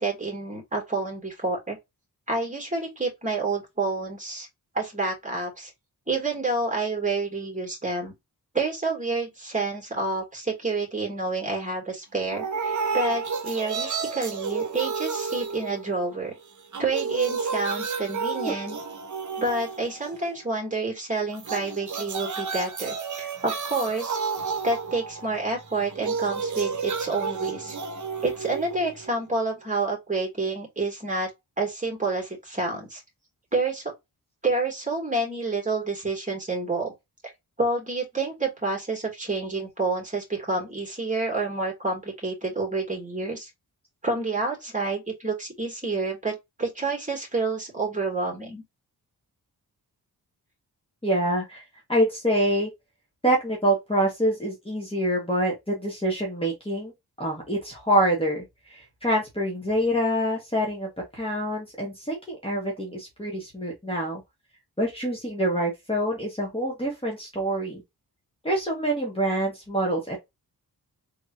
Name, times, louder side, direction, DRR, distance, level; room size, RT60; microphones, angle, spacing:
voice 1, 0.0-1.8 2.3-4.5 4.7-5.7 6.1-8.1 8.5-16.3 16.8-18.8 19.4-24.2 24.6-27.7 28.2-31.3 31.6-33.0 33.5-33.8 34.4-36.9 37.6-43.5 44.0-48.6, right 3 dB, 20° right, 3.0 m, -28 dB
sound 1, 12.3-16.3 16.6-20.4 21.3-29.3, right 5 dB, 50° right, 1.0 m, -31 dB
voice 2, 51.0-51.6 51.9-52.7 53.2-56.9 57.2-64.2 64.8-67.8 68.4-70.2, right 1 dB, 15° left, 1.9 m, -26 dB
4.0 x 3.6 x 2.9 m
cardioid pair, 80°, 39 cm